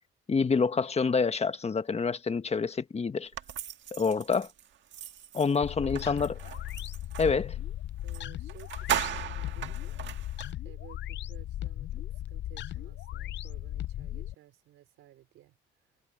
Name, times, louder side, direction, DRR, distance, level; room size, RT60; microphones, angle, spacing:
voice 1, 0.3-3.3 3.9-4.5 5.3-6.4 7.2-7.6, left 5 dB, 30° left, 1.5 m, -27 dB
sound 1, 3.3-7.4 8.1-8.2 8.5-10.5, right 10 dB, 70° right, 1.7 m, -37 dB
sound 2, 5.6-14.3, left 13 dB, 65° left, 0.6 m, -37 dB
voice 2, 8.0-10.0 10.6-16.0, right 14 dB, 90° right, 4.8 m, -56 dB
cardioid pair, 90°, 20 cm